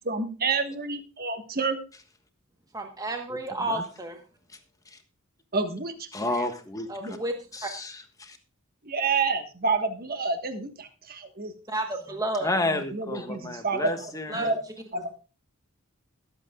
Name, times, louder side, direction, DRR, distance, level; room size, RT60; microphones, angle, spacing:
voice 1, 0.1-1.8 5.5-5.9 6.2-6.5 7.0-7.2 8.9-11.6 12.7-14.1 14.3-14.6 14.9-15.2, right 4 dB, 45° right, 7 dB, 1.4 m, -29 dB
voice 2, 2.7-4.1 6.9-7.3 7.6-7.7 11.7-12.6 14.3-14.5, right 2 dB, 15° right, 4 dB, 1.2 m, -31 dB
voice 3, 6.1-7.2 7.5-8.4 12.4-14.5, left 2 dB, 15° left, 6 dB, 1.4 m, -31 dB
22.0 x 8.1 x 2.4 m, 0.33 s
head